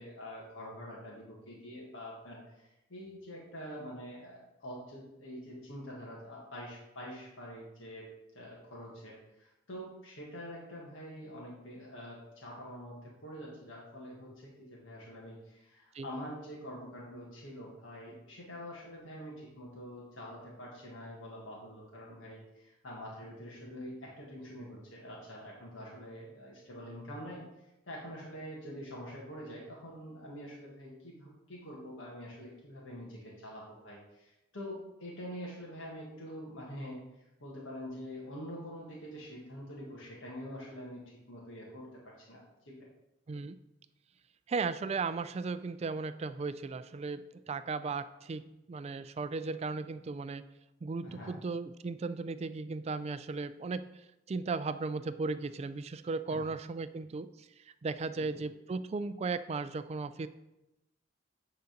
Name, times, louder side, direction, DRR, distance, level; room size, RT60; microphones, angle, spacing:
voice 1, 0.0-8.1 8.3-27.4 27.9-37.0 37.4-42.8 51.0-51.3 56.3-56.4 58.3-58.4, equal, 80° left, -4 dB, 1.7 m, -45 dB
voice 2, 44.5-50.4 50.8-60.3, right 4 dB, 35° right, 13 dB, 0.3 m, -36 dB
9.2 x 4.0 x 5.2 m, 0.94 s
head